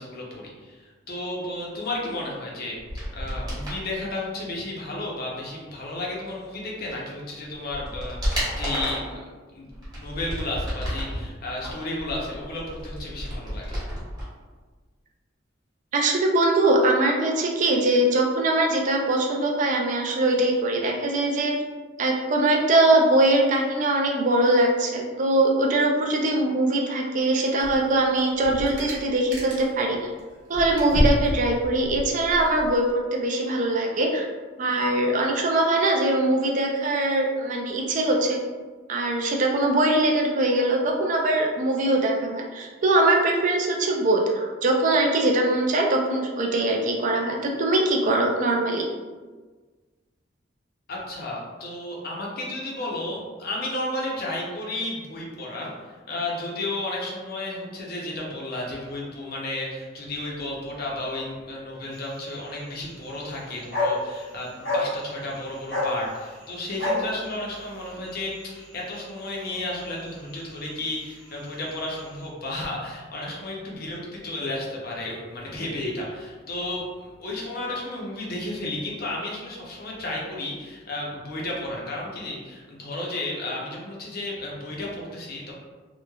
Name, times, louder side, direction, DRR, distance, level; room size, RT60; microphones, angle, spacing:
voice 1, 0.0-2.7 3.1-9.2 9.5-9.7 10.0-13.7 50.9-55.7 56.1-85.5, left 2 dB, 50° left, -3 dB, 0.6 m, -33 dB
sound 1, 2.8-3.8 6.9-7.0 7.5-9.1 9.7-11.2 11.6-14.3 14.5-14.6, equal, 20° right, 1.1 m, -31 dB
voice 2, 15.9-21.5 22.0-30.0 30.5-34.3 34.6-38.4 38.9-48.9, right 2 dB, 40° right, 0 dB, 0.4 m, -22 dB
sound 2, 27.6-27.9 28.2-29.8 30.2-32.8, equal, 70° right, 0.9 m, -29 dB
sound 3, 61.9-72.3, left 2 dB, 85° left, 1.2 m, -33 dB
3.0 x 2.1 x 2.2 m, 1.4 s
head